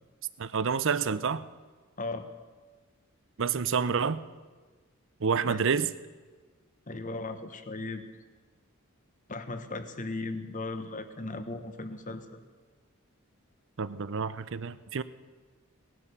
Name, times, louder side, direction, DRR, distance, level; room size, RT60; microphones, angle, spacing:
voice 1, 0.4-1.4 3.4-4.2 5.2-5.9 13.8-15.0, right 6 dB, 65° right, 15 dB, 0.6 m, -28 dB
voice 2, 6.9-8.0 9.3-12.4, left 2 dB, 40° left, 9 dB, 1.1 m, -37 dB
18.5 x 11.0 x 6.8 m, 1.4 s
head